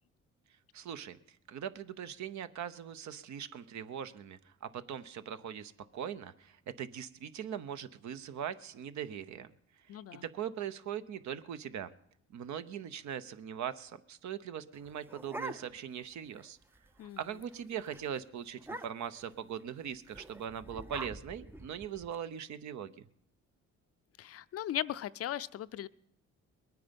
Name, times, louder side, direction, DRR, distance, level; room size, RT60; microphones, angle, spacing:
voice 1, 0.7-1.2 1.5-9.5 9.9-11.9 12.3-16.6 17.2-22.9, right 9 dB, 70° right, 12 dB, 0.8 m, -41 dB
voice 2, 9.9-10.2 17.0-17.2 24.2-25.9, left 12 dB, 50° left, 15 dB, 0.5 m, -37 dB
sound 1, 14.7-16.0 16.4-16.5 16.7-17.1 17.4-17.6 17.9-18.0 18.6-19.2 20.1-22.2, right 2 dB, 10° right, 0.4 m, -45 dB
21.0 x 9.4 x 5.2 m, 0.75 s
cardioid pair, 90°, 30 cm